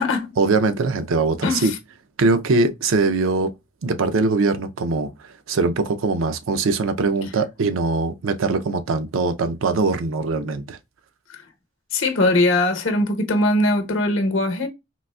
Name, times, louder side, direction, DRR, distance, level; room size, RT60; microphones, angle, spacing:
voice 1, 0.4-1.7 2.2-3.5 3.8-5.1 5.5-10.8, right 3 dB, 80° right, 0.5 m, -21 dB
voice 2, 1.4-1.8 11.9-14.7, left 2 dB, 70° left, 0.8 m, -20 dB
3.9 x 2.4 x 2.2 m
head